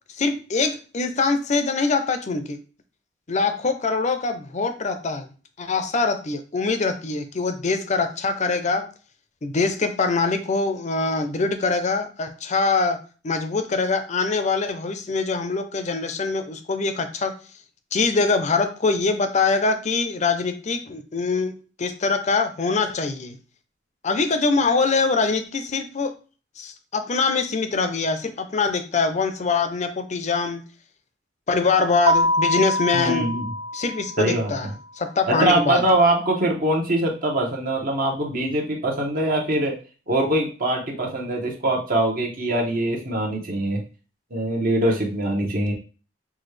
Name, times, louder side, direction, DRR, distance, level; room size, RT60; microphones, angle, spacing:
voice 1, 0.2-2.6 3.3-5.3 5.6-8.9 9.4-13.0 13.2-17.4 17.9-21.5 21.8-23.4 24.0-26.1 26.6-30.6 31.5-33.3 33.7-35.9, left 4 dB, 40° left, 8 dB, 0.5 m, -23 dB
Keyboard (musical), 32.1-34.6, equal, 25° right, 0.4 m, -24 dB
voice 2, 32.9-33.5 34.2-34.5 35.3-39.8 40.1-43.8 44.3-45.7, right 1 dB, 50° right, 0 dB, 1.0 m, -23 dB
6.0 x 2.3 x 3.2 m, 0.36 s
head